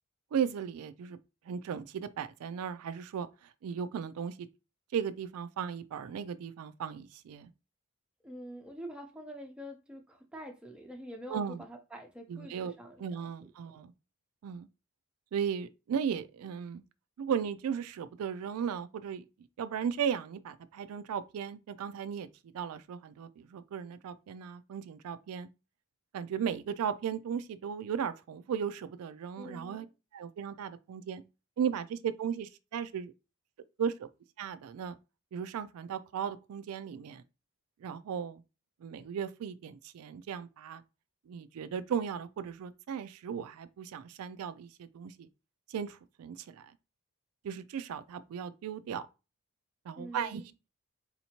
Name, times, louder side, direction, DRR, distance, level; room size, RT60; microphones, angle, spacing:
voice 1, 0.3-1.2 1.5-3.3 3.6-4.5 4.9-7.5 11.3-11.6 12.3-12.7 13.0-13.9 14.4-14.7 15.3-16.8 17.2-19.2 19.6-22.3 22.5-25.5 26.1-29.9 30.1-31.2 31.6-33.1 33.8-34.1 34.4-34.9 35.3-37.2 37.8-38.4 38.8-40.8 41.3-45.3 45.7-46.7 47.4-49.0 49.9-50.4, right 7 dB, 85° right, 0.3 m, -36 dB
voice 2, 8.2-13.3 13.6-13.8 29.4-29.9 50.0-50.5, equal, 5° right, 0.6 m, -46 dB
4.2 x 2.7 x 2.9 m
head